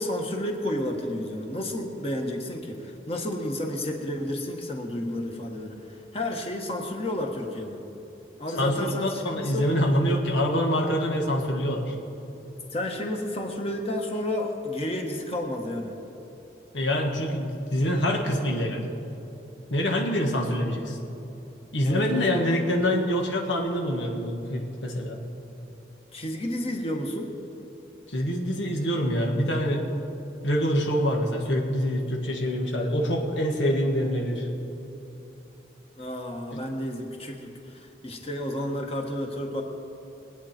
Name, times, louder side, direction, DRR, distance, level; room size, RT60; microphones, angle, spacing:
voice 1, 0.0-7.8 8.4-9.7 12.7-15.9 21.8-22.5 26.1-27.3 36.0-39.6, left 1 dB, 30° left, 2 dB, 1.5 m, -31 dB
voice 2, 9.0-11.9 16.7-18.8 19.7-21.0 21.7-25.2 28.1-29.9 30.4-34.5 36.5-36.6, equal, 90° left, 1 dB, 1.8 m, -25 dB
23.0 x 9.0 x 4.4 m, 3.0 s
head